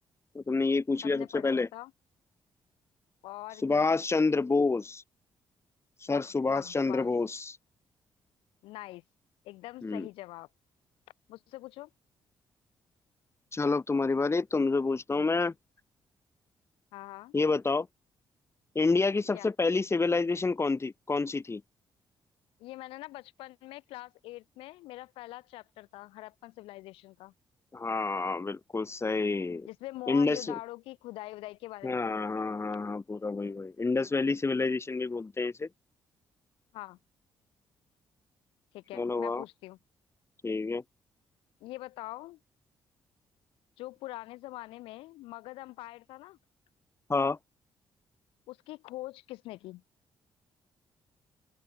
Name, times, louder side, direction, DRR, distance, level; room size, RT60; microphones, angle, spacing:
voice 1, 0.3-1.7 3.6-5.0 6.0-7.6 9.8-10.1 13.5-15.5 17.3-17.9 18.8-21.6 27.7-29.7 30.1-30.5 31.8-35.7 39.0-39.4 40.4-40.8 47.1-47.4, left 3 dB, 30° left, 3.8 m, -28 dB
voice 2, 1.0-1.9 3.2-3.9 6.1-7.1 8.6-9.0 9.4-10.5 11.3-11.9 16.9-17.3 19.3-19.5 22.6-27.3 29.7-32.2 36.7-37.0 38.7-39.8 41.6-42.4 43.8-46.4 48.5-49.8, left 18 dB, 90° left, 4.5 m, -44 dB
open air
supercardioid pair, 65°, 9 cm